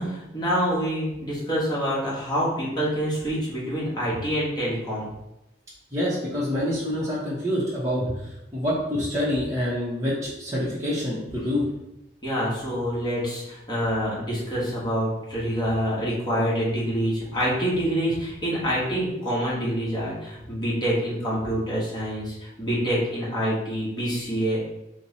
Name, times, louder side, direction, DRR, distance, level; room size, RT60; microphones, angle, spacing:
voice 1, 0.0-5.1 12.2-24.6, equal, 25° left, -7 dB, 1.3 m, -26 dB
voice 2, 5.9-11.7, left 1 dB, 15° right, -9 dB, 0.9 m, -27 dB
4.4 x 2.2 x 4.1 m, 0.88 s
head